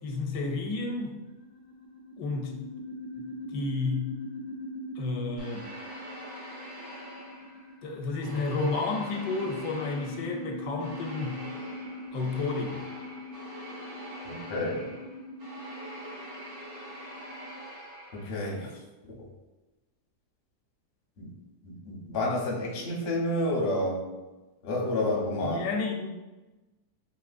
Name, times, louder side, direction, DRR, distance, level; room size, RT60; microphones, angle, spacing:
voice 1, 0.0-1.2 2.2-2.6 3.2-4.2 5.0-5.7 7.8-11.5 12.1-12.8 25.4-26.1, left 3 dB, 80° left, 3 dB, 1.2 m, -31 dB
sound 1, 1.2-17.6, left 1 dB, 35° right, 0.5 m, -42 dB
sound 2, 5.4-7.8 8.2-18.5, equal, 80° right, 1.6 m, -45 dB
voice 2, 14.2-14.9 18.1-18.8 19.2-19.3 21.2-21.3 21.6-24.0 24.6-25.7, left 1 dB, 50° left, -2 dB, 0.6 m, -30 dB
3.7 x 2.8 x 2.4 m, 1.1 s
omnidirectional pair, 1.9 m